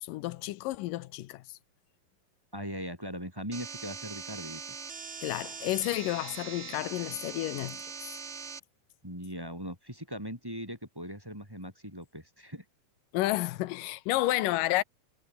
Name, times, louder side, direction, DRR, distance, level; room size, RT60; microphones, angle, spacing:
voice 1, 0.0-1.6 5.2-7.9 13.1-14.8, left 17 dB, 85° left, 2.4 m, -31 dB
voice 2, 2.5-4.6 9.0-12.6, equal, 5° right, 4.7 m, -40 dB
sound 1, 3.5-8.6, right 5 dB, 60° right, 0.6 m, -42 dB
omnidirectional pair, 3.8 m